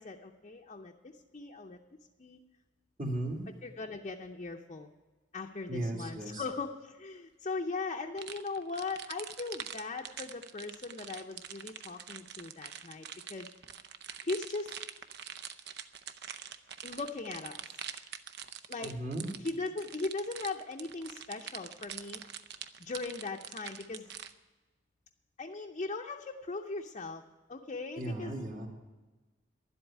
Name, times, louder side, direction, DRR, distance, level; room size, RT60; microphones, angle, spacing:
voice 1, 0.0-1.8 2.2-2.4 3.6-4.9 5.3-13.0 13.3-13.5 14.2-14.7 16.8-17.6 18.7-19.0 19.3-22.2 22.8-24.1 25.4-27.2 27.5-28.4, left 3 dB, 35° left, 2 dB, 0.6 m, -39 dB
voice 2, 3.0-3.4 5.7-6.4 18.8-19.3 28.0-28.7, right 1 dB, 45° right, -1 dB, 2.2 m, -36 dB
sound 1, 8.2-24.3, right 9 dB, 60° right, 0.6 m, -44 dB
11.5 x 8.1 x 9.8 m, 1.2 s
head